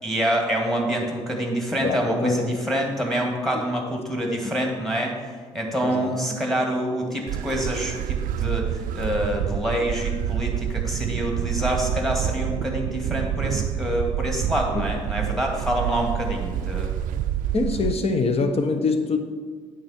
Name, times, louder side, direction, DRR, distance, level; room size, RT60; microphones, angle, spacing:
voice 1, 0.0-16.9, equal, ahead, 1 dB, 2.3 m, -26 dB
voice 2, 1.8-2.6 4.3-4.5 5.8-6.1 14.7-14.9 15.3-15.4 17.5-19.2, left 3 dB, 40° left, 7 dB, 1.1 m, -24 dB
sound 1, 7.3-17.9, right 10 dB, 60° right, 0.4 m, -27 dB
8.6 x 6.4 x 4.4 m, 1.5 s
hypercardioid pair, 55°, 15 cm